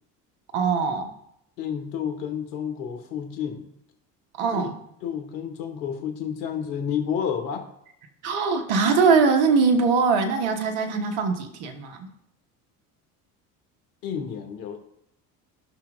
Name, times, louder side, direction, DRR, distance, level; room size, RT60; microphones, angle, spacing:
voice 1, 0.5-1.1 4.4-4.8 8.2-12.1, right 5 dB, 65° right, 6 dB, 1.4 m, -22 dB
voice 2, 1.6-3.7 4.5-4.7 5.0-7.7 14.0-14.8, left 8 dB, 70° left, 5 dB, 1.6 m, -30 dB
17.0 x 5.9 x 2.4 m, 0.76 s
hypercardioid pair, 70°, 48 cm